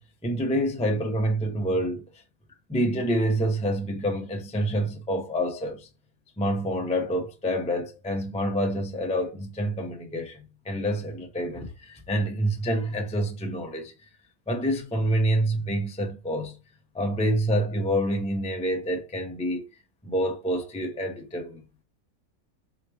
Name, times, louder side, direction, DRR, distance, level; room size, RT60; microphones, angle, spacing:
voice 1, 0.2-2.0 2.7-5.9 6.4-13.9 14.5-16.6 16.9-19.6 20.0-21.6, equal, 10° left, 0.5 m, -27 dB
4.7 x 3.1 x 3.4 m
omnidirectional pair, 1.5 m